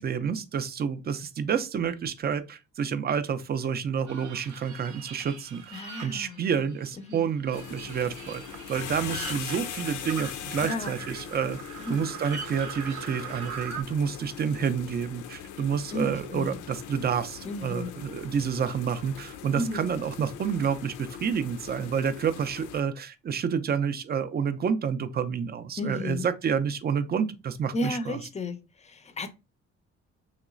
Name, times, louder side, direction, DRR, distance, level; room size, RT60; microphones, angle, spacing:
voice 1, 0.0-11.6 11.9-28.3, right 7 dB, 35° right, 0.4 m, -29 dB
sound 1, 4.1-6.8 7.1-13.8, right 7 dB, 70° right, 0.7 m, -42 dB
voice 2, 5.7-6.4 7.1-7.2 10.6-11.0 11.4-11.6 11.8-12.1 15.9-16.6 17.4-18.0 19.5-19.9 25.8-26.3 27.7-29.3, left 2 dB, 25° left, 0.5 m, -33 dB
sound 2, 7.5-22.8, left 9 dB, 80° left, 0.5 m, -41 dB
sound 3, 8.6-8.7 8.9-9.6 11.2-11.5 12.3-12.5 13.5-13.8, right 1 dB, 10° right, 0.8 m, -37 dB
3.1 x 2.9 x 2.4 m
cardioid pair, 90°, 30 cm